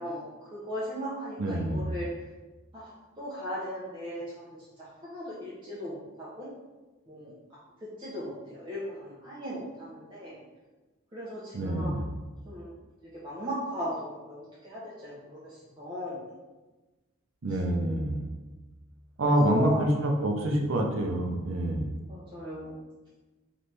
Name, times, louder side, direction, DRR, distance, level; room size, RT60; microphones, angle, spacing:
voice 1, 0.0-2.3 2.7-2.9 3.2-6.5 7.1-7.3 7.8-10.4 11.1-12.0 12.5-12.7 13.0-16.3 17.5-17.6 19.3-19.9 22.1-22.7, equal, 25° right, -9 dB, 0.7 m, -37 dB
voice 2, 1.4-1.9 11.5-12.1 17.4-18.3 19.2-21.9, right 1 dB, 70° right, 1 dB, 0.6 m, -27 dB
4.2 x 3.2 x 3.3 m, 1.2 s
head